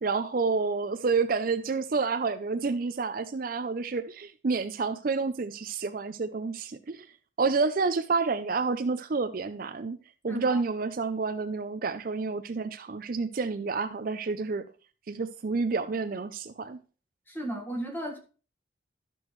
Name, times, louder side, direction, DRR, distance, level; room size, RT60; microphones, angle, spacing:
voice 1, 0.0-7.1 7.4-10.0 10.2-14.7 15.1-16.8, right 4 dB, 45° right, 0.4 m, -29 dB
voice 2, 10.3-10.6 17.3-18.2, right 1 dB, 10° left, 1.5 m, -35 dB
12.0 x 6.1 x 3.1 m
head